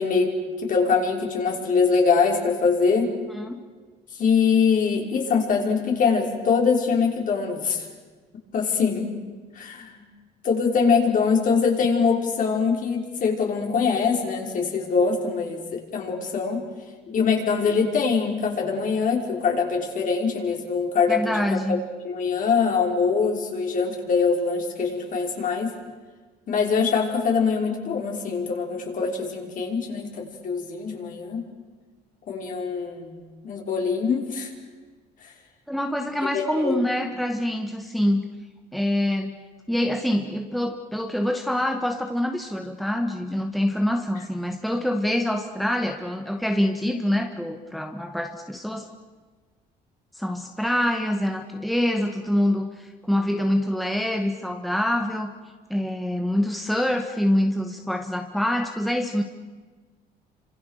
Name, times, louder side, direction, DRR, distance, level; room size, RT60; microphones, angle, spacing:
voice 1, 0.0-3.1 4.1-7.9 8.5-9.0 9.6-10.0 10.4-16.6 17.1-21.3 21.7-21.8 22.0-25.7 26.5-31.4 32.3-34.5 36.3-36.8, left 5 dB, 50° left, 0 dB, 5.7 m, -23 dB
voice 2, 21.1-21.9 35.7-38.3 38.7-39.3 39.7-48.9 50.1-55.3 55.7-59.2, left 1 dB, ahead, 3 dB, 1.8 m, -25 dB
29.5 x 26.5 x 6.8 m, 1.4 s
cardioid pair, 110°, 17 cm